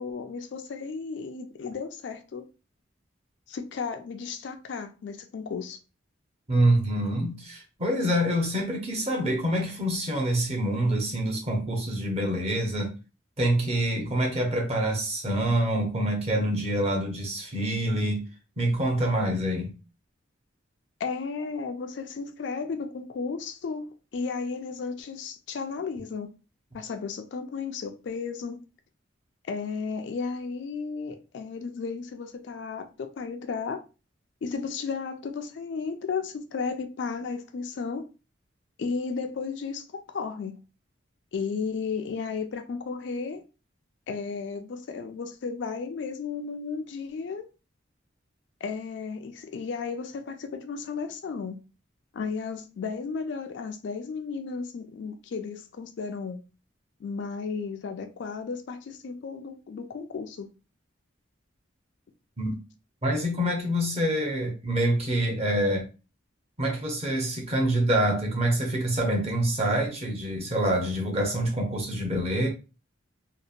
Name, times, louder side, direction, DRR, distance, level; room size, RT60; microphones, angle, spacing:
voice 1, 0.0-2.5 3.5-5.8 21.0-26.3 26.7-28.6 29.4-33.8 34.4-38.0 38.8-40.6 41.3-43.4 44.1-47.5 48.6-51.6 52.1-56.4 57.0-60.5, left 5 dB, 60° left, 0.3 m, -34 dB
voice 2, 6.5-12.9 13.4-18.3 18.6-19.7 62.4-62.6 63.0-65.8 66.6-72.5, right 1 dB, 30° right, 0.7 m, -26 dB
2.8 x 2.1 x 2.4 m
head